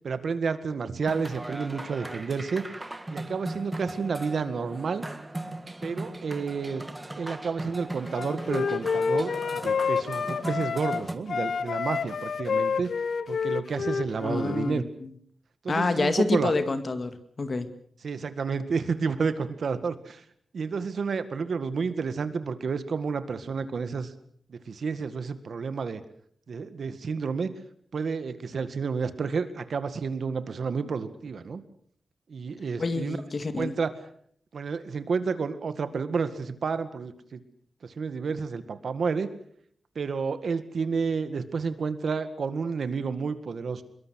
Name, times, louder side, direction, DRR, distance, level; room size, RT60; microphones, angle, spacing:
voice 1, 0.0-2.6 3.1-5.0 5.8-6.8 7.2-12.9 13.3-14.8 15.6-16.5 18.0-20.2 20.5-24.1 24.5-26.0 26.5-27.5 27.9-31.6 32.3-33.2 33.6-33.9 34.5-37.4 37.8-39.3 40.0-43.8, right 5 dB, 60° right, 11 dB, 1.9 m, -30 dB
sound 1, 1.0-11.2, right 1 dB, 15° right, 1.8 m, -38 dB
Wind instrument woodwind instrument, 8.1-11.0 11.3-14.8, left 5 dB, 65° left, 0.9 m, -29 dB
voice 2, 14.2-15.1 15.7-17.7 32.8-33.7, left 3 dB, 40° left, 9 dB, 2.0 m, -28 dB
25.5 x 22.5 x 6.4 m, 0.63 s
wide cardioid pair, 165°, 0 cm